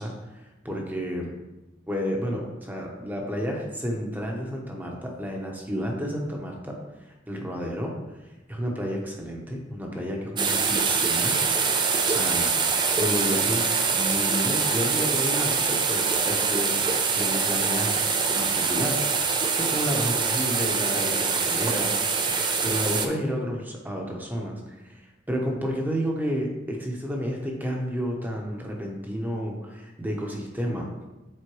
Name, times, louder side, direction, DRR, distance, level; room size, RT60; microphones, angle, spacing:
voice 1, 0.0-1.3 1.9-8.0 8.2-11.4 11.6-12.5 13.0-18.0 18.3-19.0 19.6-21.9 22.6-31.0, equal, 10° right, 0 dB, 0.9 m, -31 dB
sound 1, 10.4-23.1, right 5 dB, 25° right, 0.5 m, -24 dB
7.8 x 4.3 x 3.1 m, 1.1 s
head